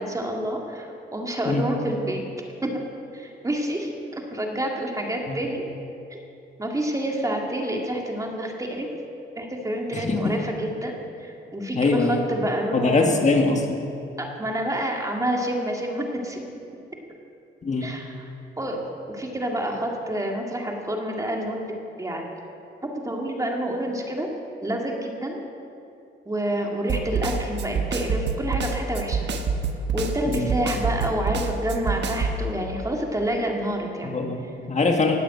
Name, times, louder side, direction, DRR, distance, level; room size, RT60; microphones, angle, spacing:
voice 1, 0.0-2.2 2.6-2.7 3.1-5.6 6.1-6.2 6.6-8.9 9.4-13.2 14.2-16.4 17.8-18.3 18.6-22.3 23.0-24.3 24.6-25.4 26.3-29.3 29.9-34.2, right 1 dB, 15° right, 0 dB, 2.5 m, -28 dB
voice 2, 9.9-10.4 11.7-12.2 12.7-13.8 17.6-17.9 30.3-30.5 34.0-35.2, left 3 dB, 35° left, 2 dB, 1.7 m, -23 dB
Snare drum, 26.9-32.4, right 5 dB, 60° right, 1.3 m, -26 dB
18.5 x 8.0 x 8.0 m, 2.7 s
cardioid pair, 95°, 20 cm